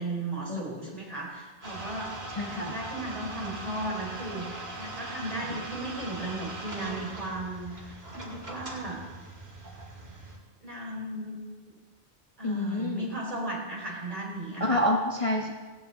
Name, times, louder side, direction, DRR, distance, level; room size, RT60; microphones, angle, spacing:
voice 1, 0.0-9.0 10.6-11.4 11.7-11.8 12.4-14.9, right 2 dB, 35° right, -3 dB, 4.6 m, -36 dB
sound 1, 1.6-10.4, right 2 dB, 65° right, 2.9 m, -40 dB
voice 2, 2.4-2.7 12.4-13.1 14.6-15.5, left 1 dB, 30° left, 0 dB, 1.2 m, -27 dB
17.0 x 15.5 x 4.0 m, 1.4 s
omnidirectional pair, 1.1 m